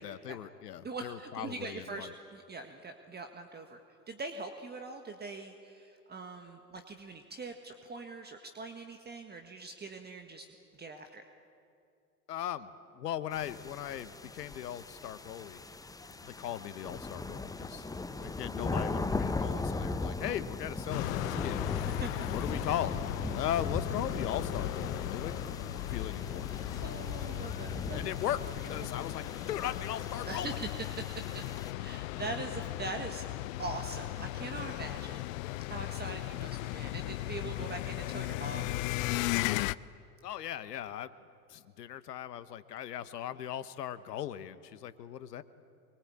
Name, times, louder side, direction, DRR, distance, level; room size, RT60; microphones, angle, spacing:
voice 1, 0.0-2.1 12.3-15.6 16.1-17.9 18.2-21.9 22.3-23.0 23.3-25.3 25.9-26.6 27.2-27.6 27.9-30.6 34.6-34.8 40.2-41.1 41.5-45.4, left 11 dB, 80° left, 14 dB, 1.2 m, -38 dB
voice 2, 0.8-3.8 4.1-10.5 10.7-11.2 17.7-17.8 21.9-22.1 25.9-26.1 26.5-28.1 30.2-30.7 31.0-31.1 31.3-31.4 31.8-33.2 33.6-38.7, right 3 dB, 20° right, 5 dB, 1.7 m, -42 dB
sound 1, 13.3-31.7, left 3 dB, 10° left, 0.9 m, -39 dB
sound 2, 20.9-39.7, left 18 dB, 55° left, 0.7 m, -36 dB
24.5 x 23.0 x 8.8 m, 2.5 s
hypercardioid pair, 90°, 47 cm